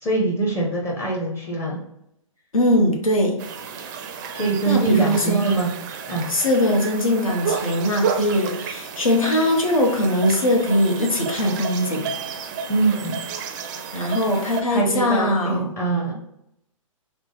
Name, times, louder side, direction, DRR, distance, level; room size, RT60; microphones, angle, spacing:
voice 1, 0.0-1.8 4.3-5.7 6.1-6.3 12.7-13.2 14.7-16.1, right 3 dB, 15° left, -4 dB, 0.6 m, -23 dB
voice 2, 2.5-3.4 4.7-5.6 6.3-12.1 13.9-15.7, left 1 dB, 90° left, 0 dB, 0.8 m, -21 dB
sound 1, 3.4-14.6, right 6 dB, 35° right, 0.4 m, -31 dB
3.2 x 2.0 x 3.1 m, 0.77 s
hypercardioid pair, 125°, 17 cm